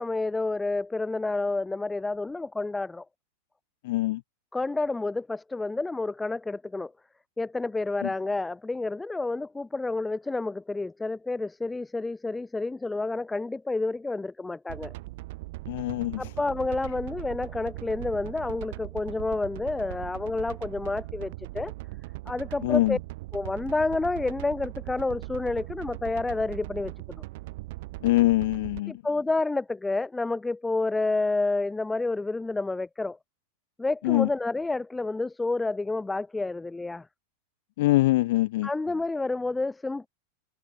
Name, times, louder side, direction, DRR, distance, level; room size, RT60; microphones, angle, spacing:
voice 1, 0.0-3.0 4.5-6.9 7.4-14.9 16.2-21.7 22.3-23.0 23.3-27.2 28.9-33.2 33.8-37.1 38.6-40.1, left 3 dB, 10° left, 1.5 m, -29 dB
voice 2, 3.8-4.2 15.7-16.2 22.6-23.0 28.0-28.9 34.0-34.3 37.8-38.7, left 18 dB, 50° left, 1.9 m, -23 dB
sound 1, 14.7-28.8, right 20 dB, 50° right, 6.5 m, -40 dB
figure-of-eight pair, 90°, 0 cm